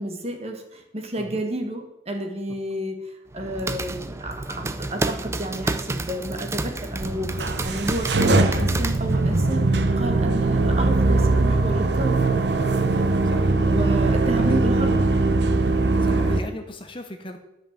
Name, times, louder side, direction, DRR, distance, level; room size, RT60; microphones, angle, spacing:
voice 1, 0.0-12.2 13.6-14.9, right 1 dB, 30° right, 3 dB, 1.4 m, -31 dB
sound 1, 3.3-9.5, right 2 dB, 15° right, 0.4 m, -30 dB
sound 2, 7.0-16.4, right 2 dB, 55° right, 0.7 m, -21 dB
voice 2, 12.8-13.5 14.4-14.7 15.7-17.4, left 1 dB, 25° left, 6 dB, 0.8 m, -37 dB
10.5 x 5.3 x 7.4 m, 0.94 s
head